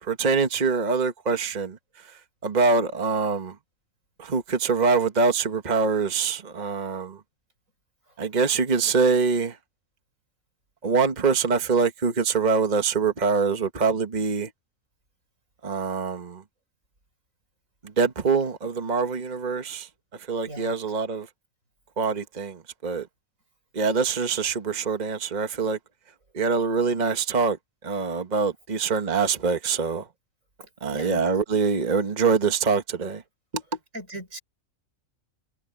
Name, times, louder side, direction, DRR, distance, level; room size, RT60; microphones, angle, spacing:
voice 1, 0.0-3.6 4.2-7.2 8.2-9.6 10.8-14.5 15.6-16.4 17.8-21.3 22.0-23.1 23.7-25.8 26.3-30.1 30.8-33.2 33.5-33.6, right 4 dB, 35° right, 1.4 m, -24 dB
voice 2, 30.6-31.2 33.9-34.4, right 1 dB, 90° right, 7.0 m, -39 dB
omnidirectional pair, 1.3 m